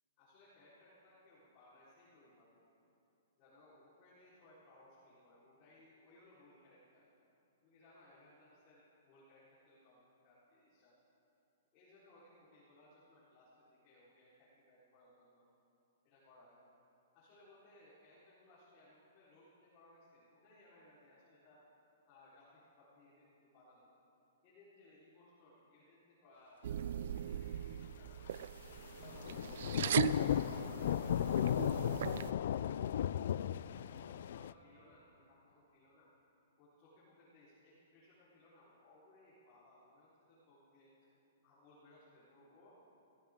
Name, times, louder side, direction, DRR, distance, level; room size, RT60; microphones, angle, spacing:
voice 1, 0.2-2.6 3.4-7.0 7.6-10.9 11.7-15.5 16.0-16.6 17.1-21.6 22.1-23.9 24.4-28.2 28.9-29.6 30.1-33.1 33.8-36.1 36.6-40.9 41.4-42.8, left 1 dB, 30° left, -11 dB, 4.3 m, -64 dB
sound 1, 26.6-32.3, right 9 dB, 60° right, 0.4 m, -39 dB
sound 2, 27.2-27.5 27.9-31.7, right 3 dB, 40° right, 3.7 m, -65 dB
Thunder / Rain, 29.0-34.5, left 10 dB, 60° left, 0.3 m, -35 dB
23.5 x 15.0 x 3.8 m, 2.8 s
hypercardioid pair, 160°, 0 cm